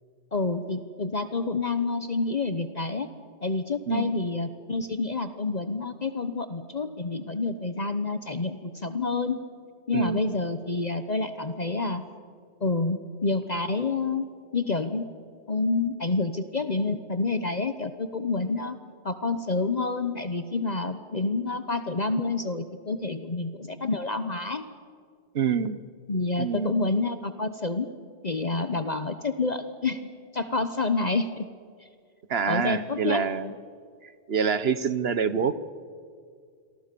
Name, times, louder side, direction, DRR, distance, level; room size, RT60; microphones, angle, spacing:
voice 1, 0.3-3.1 3.4-9.4 9.9-12.0 12.6-14.3 14.5-15.0 15.5-18.8 19.0-24.6 26.1-27.9 28.2-30.0 30.3-31.5 32.5-33.2, left 3 dB, 40° left, 10 dB, 1.1 m, -28 dB
voice 2, 9.9-10.2 25.3-25.8 26.4-26.8 32.3-33.5 34.3-35.6, right 6 dB, 70° right, 14 dB, 1.3 m, -26 dB
28.0 x 23.0 x 6.9 m, 2.1 s
omnidirectional pair, 1.1 m